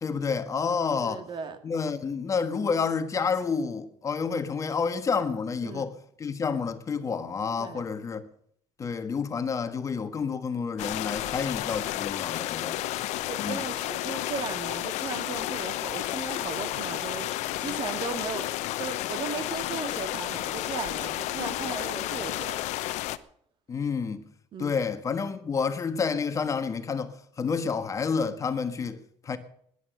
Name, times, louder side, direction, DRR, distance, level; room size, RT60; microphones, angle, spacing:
voice 1, 0.0-1.2 1.6-5.9 6.2-8.2 8.8-12.8 13.4-13.6 23.7-24.2 24.6-29.0 29.2-29.4, left 5 dB, 25° left, 1.4 m, -29 dB
voice 2, 1.0-1.6 5.6-5.9 7.6-7.8 13.3-17.3 17.6-18.5 18.8-22.6 24.5-24.8, right 6 dB, 40° right, 2.1 m, -36 dB
sound 1, 10.8-23.2, left 15 dB, 75° left, 0.9 m, -32 dB
18.5 x 11.0 x 6.3 m
cardioid pair, 150°, 12 cm